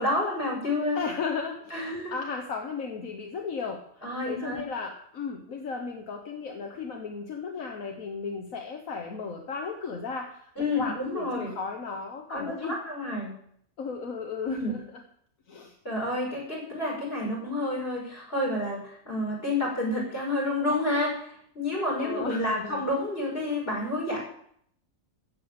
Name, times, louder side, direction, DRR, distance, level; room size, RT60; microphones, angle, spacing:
voice 1, 0.0-1.0 1.7-2.1 4.0-4.6 10.6-11.5 12.3-13.3 14.4-14.8 15.8-21.2 21.5-24.2, left 1 dB, 45° left, -2 dB, 6.5 m, -29 dB
voice 2, 0.9-12.8 13.8-15.0 15.5-15.7 22.0-22.9, left 5 dB, 80° left, 4 dB, 1.7 m, -35 dB
15.0 x 7.8 x 7.8 m, 0.66 s
omnidirectional pair, 1.4 m